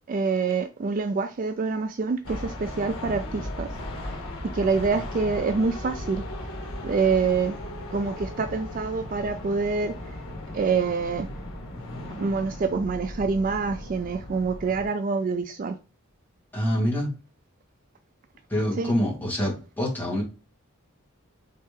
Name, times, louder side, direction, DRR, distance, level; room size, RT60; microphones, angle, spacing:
voice 1, 0.1-3.7 4.5-6.2 6.8-7.6 7.9-9.9 10.5-11.3 12.2-15.8 18.8-18.9, right 4 dB, 40° right, 0.3 m, -26 dB
sound 1, 2.2-14.9, left 1 dB, 80° left, 1.5 m, -37 dB
voice 2, 16.5-17.1 18.5-20.2, equal, 10° left, 1.8 m, -26 dB
4.1 x 3.3 x 3.3 m
head